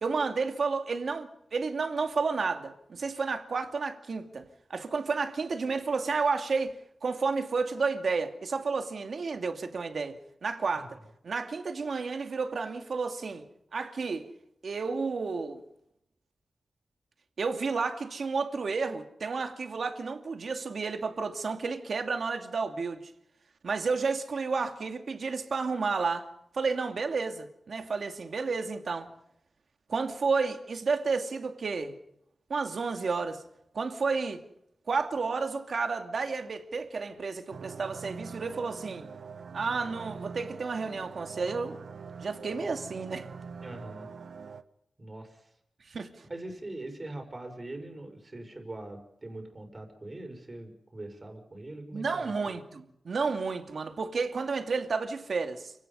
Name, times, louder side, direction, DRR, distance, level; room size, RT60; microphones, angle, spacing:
voice 1, 0.0-6.8 7.0-11.0 11.2-13.4 13.7-14.3 14.6-15.6 17.4-23.0 23.6-26.3 26.5-29.1 29.9-31.9 32.5-33.4 33.7-34.4 34.9-39.1 39.5-41.8 42.2-43.3 45.9-46.1 51.9-55.7, right 4 dB, 65° right, 2.5 m, -31 dB
sound 1, 37.5-44.6, right 5 dB, 85° right, 1.2 m, -44 dB
voice 2, 43.6-44.1 45.0-45.5 46.3-52.3, right 2 dB, 30° right, 5.7 m, -42 dB
29.5 x 18.0 x 5.6 m
wide cardioid pair, 130°, 0 cm